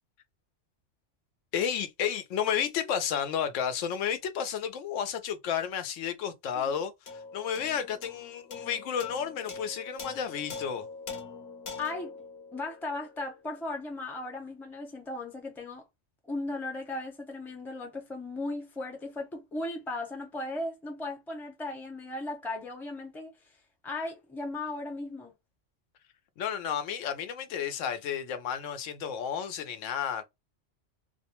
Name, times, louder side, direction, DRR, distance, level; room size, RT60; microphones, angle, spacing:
voice 1, 1.5-10.9 26.4-30.2, left 8 dB, 85° left, 1.0 m, -32 dB
sound 1, 7.1-13.7, left 4 dB, 60° left, 0.9 m, -43 dB
voice 2, 11.8-12.1 12.5-15.8 16.2-23.3 23.8-25.3, left 2 dB, ahead, 0.5 m, -36 dB
2.3 x 2.2 x 2.8 m
omnidirectional pair, 1.3 m